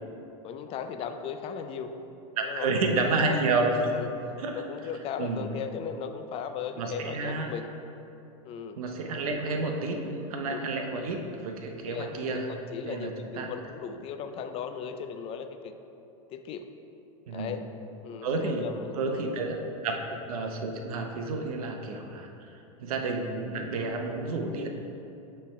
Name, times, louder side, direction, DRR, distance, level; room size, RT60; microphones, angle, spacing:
voice 1, 0.4-1.9 2.4-3.4 3.8-7.7 8.4-8.8 10.4-10.7 11.8-12.4 12.7-15.7 16.3-16.7 17.3-17.6 18.0-19.4 19.9-20.2, left 7 dB, 30° left, 7 dB, 0.4 m, -37 dB
voice 2, 2.4-3.8 4.4-4.6 5.2-5.5 6.8-7.5 8.8-12.5 12.9-13.5 17.3-17.5 18.2-18.7 19.0-19.6 19.8-24.7, right 3 dB, 80° right, 3 dB, 0.7 m, -30 dB
9.8 x 3.3 x 3.2 m, 2.8 s
hypercardioid pair, 120°, 18 cm